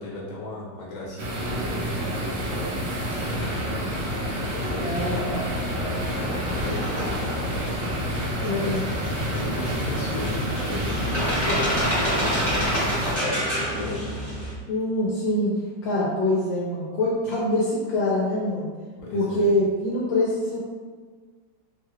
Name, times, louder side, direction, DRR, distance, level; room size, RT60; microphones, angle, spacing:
voice 1, 0.0-3.9 4.5-7.8 8.3-8.7 9.3-11.6 11.9-14.0 19.0-19.4, left 2 dB, 55° left, -6 dB, 1.1 m, -35 dB
sound 1, 1.2-13.2, equal, 75° right, 1.4 m, -29 dB
sound 2, 3.0-14.5, equal, 10° right, 0.8 m, -29 dB
voice 2, 4.8-5.3 8.4-8.8 14.7-15.5 15.8-18.7 19.1-20.6, left 1 dB, 75° left, -5 dB, 1.2 m, -24 dB
3.2 x 2.3 x 3.0 m, 1.5 s
omnidirectional pair, 2.2 m